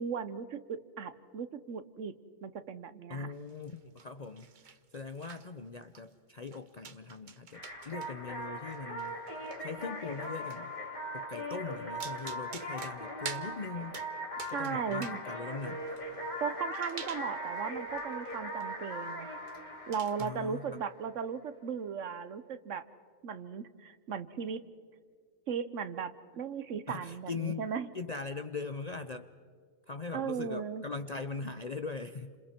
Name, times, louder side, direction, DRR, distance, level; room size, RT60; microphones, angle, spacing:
voice 1, 0.0-2.1 2.4-3.3 14.5-15.2 16.4-19.3 19.9-22.8 23.2-24.6 25.5-27.9 30.1-30.8, right 6 dB, 60° right, 13 dB, 1.1 m, -37 dB
voice 2, 3.1-9.2 9.6-10.7 11.1-14.0 14.5-15.8 20.2-20.8 26.9-27.7 27.9-29.3 29.9-32.3, left 4 dB, 55° left, 9 dB, 0.4 m, -41 dB
Jelly Falling, 3.5-4.1 4.4-5.5 5.8-6.1 6.5-8.1 8.4-10.6 11.7-11.8 12.0-13.5 13.9-14.1 14.4-15.2 15.5-17.7 18.0-18.3 18.6-18.7 18.9-19.1 19.5-19.6 19.9-20.3, right 6 dB, 40° right, 0.8 m, -47 dB
sound 1, 7.5-21.0, equal, 30° left, 2.7 m, -40 dB
29.5 x 27.0 x 4.4 m, 2.1 s
omnidirectional pair, 1.5 m